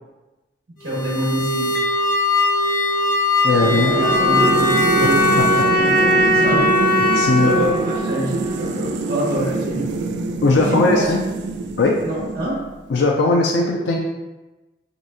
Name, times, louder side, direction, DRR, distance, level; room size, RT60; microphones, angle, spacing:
sound 1, 0.8-5.7, left 3 dB, 55° left, 0.9 m, -21 dB
voice 1, 0.8-1.7 3.6-7.0 7.4-9.9 10.5-11.0 12.0-12.6, right 1 dB, 55° right, -6 dB, 1.5 m, -25 dB
voice 2, 3.4-3.9 7.1-7.5 10.4-11.2 11.8-12.0 12.9-14.0, left 3 dB, 80° left, 0 dB, 0.4 m, -18 dB
sound 2, 3.5-12.8, right 3 dB, 80° right, 0.3 m, -25 dB
sound 3, 4.0-9.0, equal, 15° right, 1.1 m, -20 dB
4.7 x 2.6 x 2.7 m, 1.1 s
head